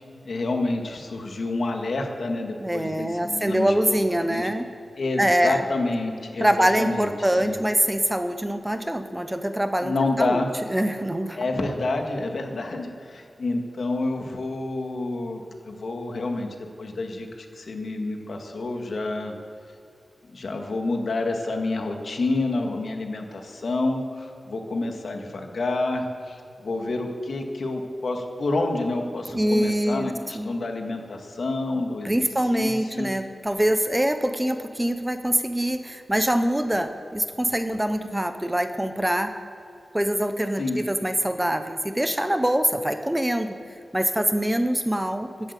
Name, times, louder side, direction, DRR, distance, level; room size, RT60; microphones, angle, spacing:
voice 1, 0.2-4.5 5.0-7.1 7.4-7.5 9.8-10.5 11.4-19.3 20.3-32.1 32.5-33.1 40.6-40.8, left 2 dB, 65° left, 3 dB, 1.8 m, -28 dB
voice 2, 2.6-4.7 5.2-5.6 6.4-10.4 10.7-11.4 29.3-30.1 30.3-30.5 32.0-39.3 39.9-43.6 43.9-45.3, right 1 dB, 10° right, 8 dB, 0.8 m, -24 dB
14.0 x 8.6 x 8.3 m, 2.5 s
wide cardioid pair, 120°, 0 cm